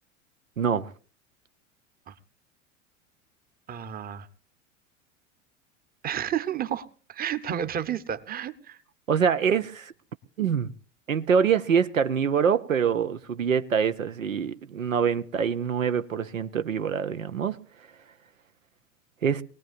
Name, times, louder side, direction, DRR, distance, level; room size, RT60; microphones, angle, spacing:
voice 1, 0.6-0.9 9.1-9.9 10.4-10.7 11.1-17.6 19.2-19.4, right 7 dB, 80° right, 0.7 m, -25 dB
voice 2, 3.7-4.3 6.0-8.8, right 9 dB, 25° right, 1.0 m, -31 dB
23.5 x 18.5 x 2.5 m
figure-of-eight pair, 80°, 39 cm